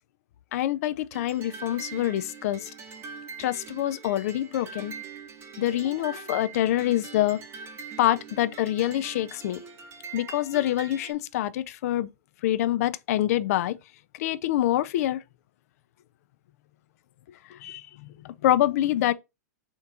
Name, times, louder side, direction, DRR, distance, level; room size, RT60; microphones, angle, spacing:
voice 1, 0.5-2.7 3.4-4.9 5.6-7.4 8.0-9.6 10.1-12.1 12.4-13.8 14.1-15.2 17.5-19.1, left 13 dB, 60° left, 0.4 m, -26 dB
sound 1, 1.1-11.1, right 5 dB, 25° right, 0.8 m, -43 dB
3.5 x 2.9 x 3.7 m
hypercardioid pair, 130°, 9 cm